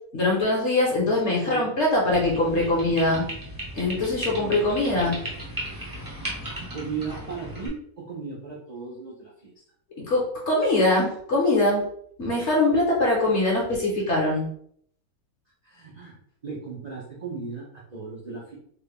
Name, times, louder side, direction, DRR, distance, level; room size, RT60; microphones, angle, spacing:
voice 1, 0.1-3.3 3.7-5.2 10.0-11.8 12.2-14.4, left 2 dB, 50° left, -2 dB, 1.2 m, -22 dB
voice 2, 1.3-1.7 4.3-4.6 6.2-6.3 6.7-9.5 15.6-16.2 16.4-18.5, right 5 dB, 50° right, -5 dB, 0.5 m, -37 dB
sound 1, 2.1-7.7, right 1 dB, 20° right, 0.7 m, -36 dB
3.4 x 2.3 x 3.4 m, 0.65 s
omnidirectional pair, 1.7 m